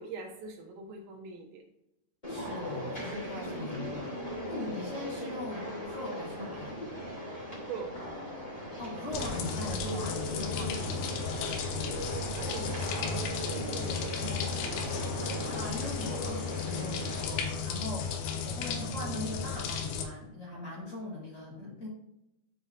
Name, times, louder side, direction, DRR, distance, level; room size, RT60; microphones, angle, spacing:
voice 1, 0.0-1.6 7.6-8.0 12.4-15.1 20.9-21.0, right 4 dB, 70° right, 0 dB, 2.9 m, -43 dB
sound 1, 2.2-17.2, equal, 10° left, 2.2 m, -38 dB
voice 2, 2.3-6.8 8.8-11.1 15.5-21.9, left 2 dB, 35° left, -7 dB, 2.6 m, -40 dB
sound 2, 9.1-20.0, left 5 dB, 75° left, 2.6 m, -34 dB
12.0 x 4.9 x 2.7 m, 0.88 s
omnidirectional pair, 4.8 m